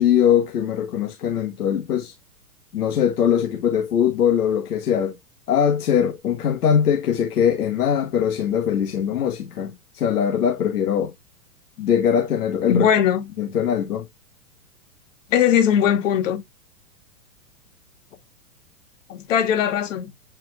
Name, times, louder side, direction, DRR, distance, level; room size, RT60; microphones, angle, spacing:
voice 1, 0.0-2.1 2.7-5.2 5.5-11.1 11.8-12.9 13.4-14.1, left 8 dB, 90° left, 1.4 m, -21 dB
voice 2, 12.7-13.3 15.3-16.4 19.1-20.1, left 8 dB, 55° left, 2.2 m, -19 dB
8.8 x 4.5 x 2.3 m
hypercardioid pair, 145°, 45 cm